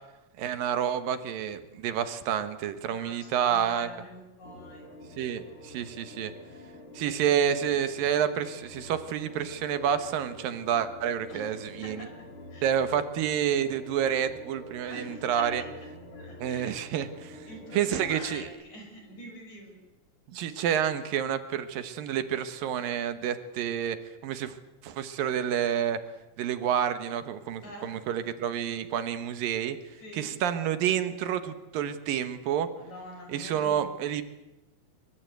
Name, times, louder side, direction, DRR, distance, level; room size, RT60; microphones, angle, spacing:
voice 1, 0.4-3.9 5.2-6.3 6.9-12.1 12.6-15.6 16.4-17.4 17.7-18.4 20.3-24.0 24.2-24.6 24.8-26.0 26.4-29.8 30.1-32.7 33.3-34.2, right 9 dB, 80° right, 10 dB, 3.0 m, -29 dB
voice 2, 2.9-4.8 11.3-12.1 12.5-12.8 14.9-15.7 16.1-16.8 17.4-19.9 27.6-28.0 30.0-30.3 32.7-33.9, left 1 dB, 55° left, 2 dB, 7.0 m, -45 dB
sound 1, 4.4-18.5, left 1 dB, 40° left, 3.1 m, -47 dB
23.5 x 23.5 x 8.2 m, 1.0 s
omnidirectional pair, 4.0 m